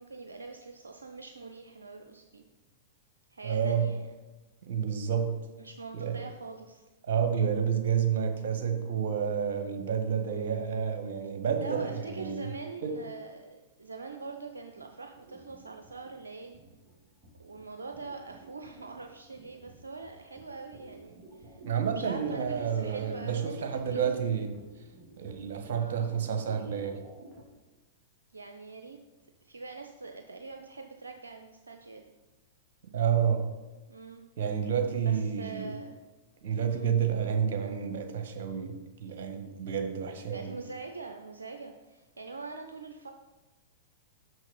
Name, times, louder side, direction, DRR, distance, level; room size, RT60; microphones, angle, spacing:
voice 1, 0.0-2.4 3.3-4.1 5.6-6.9 10.3-10.6 11.6-16.6 17.4-21.6 21.9-24.1 25.7-26.1 28.3-29.0 29.4-32.1 33.9-34.2 35.0-36.0 36.7-36.9 40.3-43.1, right 4 dB, 80° right, 4 dB, 0.6 m, -43 dB
voice 2, 3.4-3.9 4.7-5.3 5.9-6.2 7.1-12.5 12.8-12.9 21.6-24.5 25.2-27.0 32.9-33.4 34.4-35.7 36.4-38.7 39.0-40.6, right 7 dB, 60° right, 5 dB, 1.4 m, -29 dB
sound 1, 14.5-27.6, right 2 dB, 20° right, 2.5 m, -53 dB
6.3 x 6.1 x 5.5 m, 1.1 s
figure-of-eight pair, 100°, 0 cm